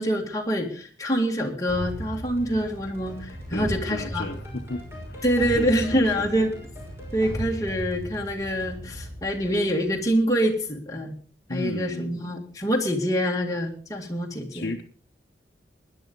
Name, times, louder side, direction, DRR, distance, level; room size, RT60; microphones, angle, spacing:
voice 1, 0.0-4.2 5.2-6.5 7.1-11.1 11.5-14.7, equal, 20° left, 0 dB, 2.0 m, -25 dB
sound 1, 1.7-10.5, equal, 15° right, 6.1 m, -37 dB
voice 2, 3.5-5.2 5.6-6.3 11.5-12.2 14.5-14.8, left 2 dB, 60° left, -1 dB, 1.0 m, -34 dB
21.0 x 10.5 x 3.9 m, 0.41 s
head